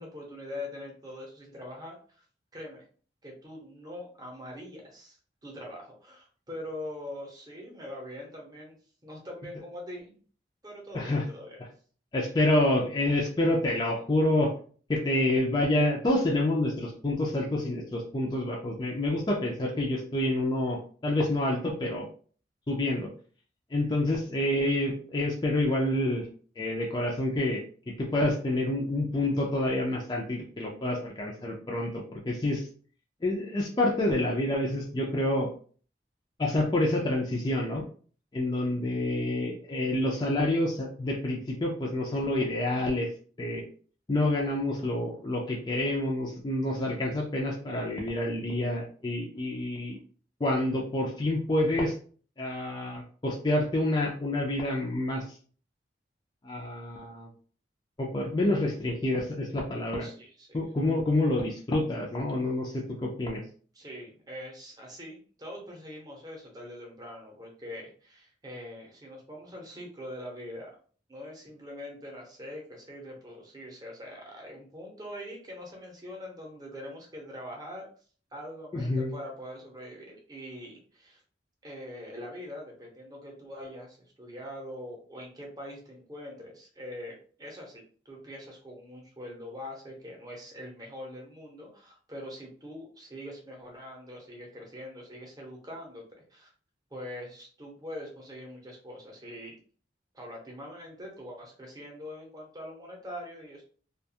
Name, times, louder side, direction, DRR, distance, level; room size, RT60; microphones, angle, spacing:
voice 1, 0.0-2.2 2.5-2.8 3.2-8.8 9.0-10.1 10.6-11.6 60.0-60.6 63.7-70.7 71.1-77.8 78.3-81.2 81.6-87.1 87.4-96.0 96.3-96.5 96.9-99.5 100.1-103.6, left 1 dB, 20° right, -1 dB, 0.8 m, -43 dB
voice 2, 12.1-14.5 14.9-22.0 22.7-23.1 23.7-26.2 26.6-27.6 28.0-32.7 33.2-35.5 36.4-37.8 38.3-43.1 43.4-43.6 44.1-50.0 50.4-51.9 52.4-55.2 56.4-57.3 58.0-60.1 60.5-63.4 78.7-79.1, left 1 dB, 25° left, -1 dB, 0.4 m, -28 dB
2.4 x 2.3 x 2.7 m, 0.42 s
head